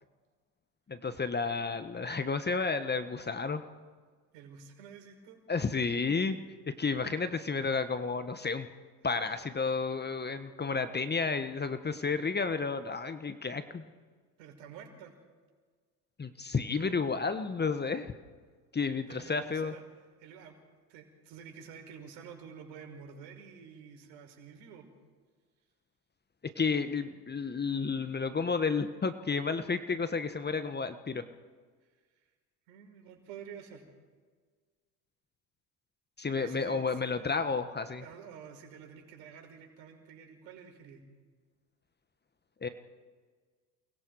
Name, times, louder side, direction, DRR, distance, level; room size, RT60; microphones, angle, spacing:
voice 1, 0.9-3.6 5.5-6.4 6.7-8.7 9.0-13.8 16.2-18.1 18.7-19.7 26.6-31.2 36.2-38.0 42.6-42.7, left 4 dB, 20° left, 10 dB, 1.4 m, -31 dB
voice 2, 4.3-5.4 14.4-15.2 19.1-19.8 20.2-20.6 20.9-24.9 31.8-31.9 32.7-33.9 36.3-36.9 38.0-41.0, right 7 dB, 65° right, 3 dB, 5.5 m, -49 dB
29.5 x 20.5 x 4.9 m, 1.5 s
hypercardioid pair, 75°, 49 cm